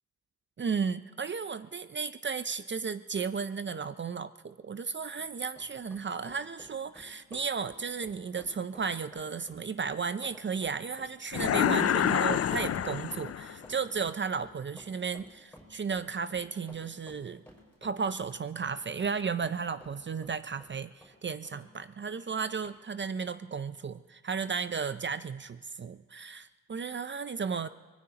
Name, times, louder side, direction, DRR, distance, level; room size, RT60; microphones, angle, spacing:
voice 1, 0.6-17.4 17.8-27.7, right 5 dB, 35° right, 13 dB, 0.5 m, -34 dB
Run, 5.0-21.7 22.0-22.1 22.6-22.8, equal, 5° left, 5.3 m, -54 dB
sound 1, 11.3-13.6, left 9 dB, 50° left, 0.4 m, -27 dB
24.0 x 19.5 x 2.9 m, 1.4 s
cardioid pair, 80°, 32 cm